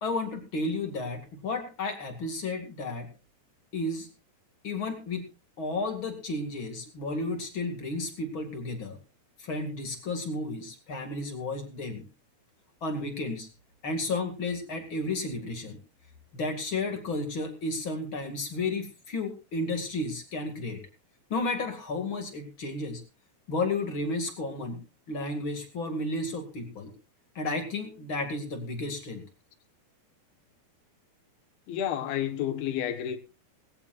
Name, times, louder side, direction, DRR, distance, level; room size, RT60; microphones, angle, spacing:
voice 1, 0.0-3.1 3.7-4.1 4.6-5.2 5.6-9.0 9.4-12.0 12.8-13.5 13.8-15.8 16.3-20.8 21.3-23.0 23.5-26.9 27.3-29.2, left 2 dB, 40° left, 2.5 m, -32 dB
voice 2, 31.7-33.2, left 10 dB, 85° left, 3.2 m, -30 dB
19.5 x 17.0 x 2.4 m
omnidirectional pair, 4.2 m